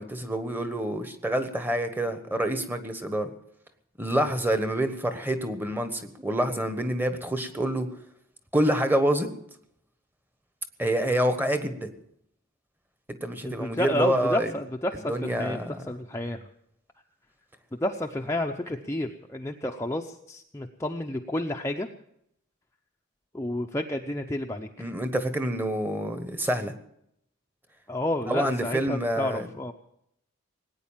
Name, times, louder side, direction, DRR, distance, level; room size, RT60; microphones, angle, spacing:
voice 1, 0.0-3.3 4.0-7.9 8.5-9.3 10.8-11.9 13.2-14.5 15.1-15.9 24.8-26.7 28.3-29.5, right 1 dB, 10° right, 8 dB, 1.3 m, -27 dB
voice 2, 13.5-16.4 17.8-21.9 23.3-24.7 27.9-29.7, left 1 dB, 15° left, 2 dB, 0.7 m, -30 dB
19.0 x 9.5 x 7.3 m, 0.72 s
head